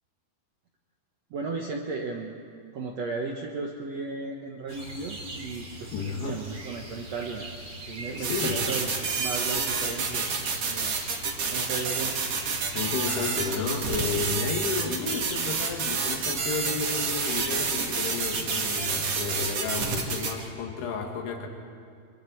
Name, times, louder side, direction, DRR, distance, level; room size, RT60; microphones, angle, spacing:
voice 1, 1.3-2.3 2.7-7.5 7.9-11.0 11.5-12.1, right 4 dB, 80° right, 1 dB, 1.5 m, -35 dB
sound 1, 4.7-20.5, right 1 dB, 30° right, 2.9 m, -41 dB
voice 2, 5.9-6.4 8.2-8.6 12.7-21.5, left 5 dB, 75° left, 2 dB, 3.9 m, -32 dB
sound 2, 8.2-20.3, right 5 dB, 50° right, 2.4 m, -29 dB
25.0 x 24.0 x 4.6 m, 2.2 s
omnidirectional pair, 4.7 m